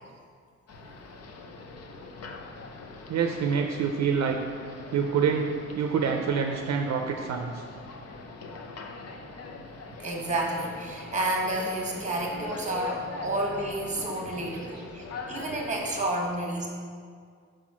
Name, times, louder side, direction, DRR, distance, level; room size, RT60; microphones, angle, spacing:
sound 1, 0.7-16.1, left 3 dB, 55° left, 0.7 m, -42 dB
voice 1, 3.1-4.4 4.9-5.5 5.7-7.6 14.5-14.7, right 6 dB, 65° right, 3 dB, 0.5 m, -26 dB
voice 2, 10.0-16.7, right 1 dB, 25° right, -1 dB, 1.2 m, -30 dB
6.0 x 4.9 x 6.0 m, 2.1 s
wide cardioid pair, 170°, 29 cm